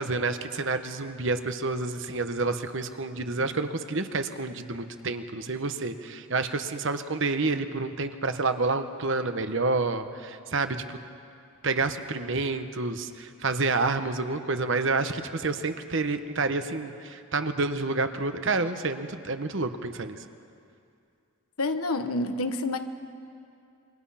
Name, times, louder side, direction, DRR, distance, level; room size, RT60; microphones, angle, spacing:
voice 1, 0.0-11.0 11.6-20.2, right 3 dB, 55° right, 8 dB, 1.1 m, -29 dB
voice 2, 21.6-22.8, left 2 dB, 80° left, 8 dB, 1.3 m, -28 dB
27.5 x 24.5 x 5.8 m, 2.5 s
head